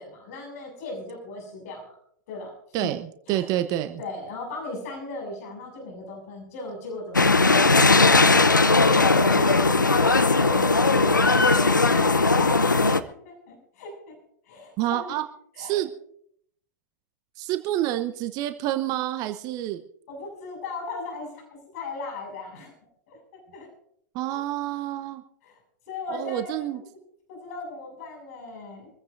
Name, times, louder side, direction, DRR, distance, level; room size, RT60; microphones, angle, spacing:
voice 1, 0.0-1.9 2.3-2.9 3.3-3.5 4.0-8.3 8.9-12.6 12.8-14.1 14.5-15.1 15.5-15.8 20.1-21.4 21.7-22.7 23.1-23.2 23.5-23.7 25.4-25.6 25.9-26.6 27.3-28.9, left 3 dB, 55° left, 1 dB, 6.5 m, -37 dB
voice 2, 2.7-4.0 14.8-15.2 15.6-15.9 17.4-19.8 24.1-25.2 26.1-26.8, right 13 dB, 40° right, 9 dB, 1.0 m, -28 dB
sound 1, 7.1-13.0, left 3 dB, 85° left, 0.8 m, -18 dB
26.0 x 15.0 x 2.6 m, 0.68 s
figure-of-eight pair, 95°, 10 cm